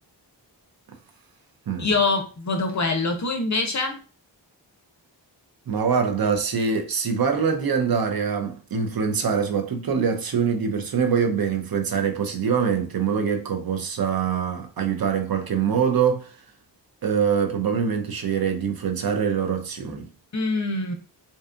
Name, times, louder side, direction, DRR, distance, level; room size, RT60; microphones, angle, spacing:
voice 1, 1.8-4.0 20.3-20.9, left 3 dB, 40° left, 0.5 m, -24 dB
voice 2, 5.7-16.3 17.0-20.1, right 6 dB, 55° right, 0.5 m, -24 dB
2.6 x 2.3 x 2.4 m
wide cardioid pair, 100°, 44 cm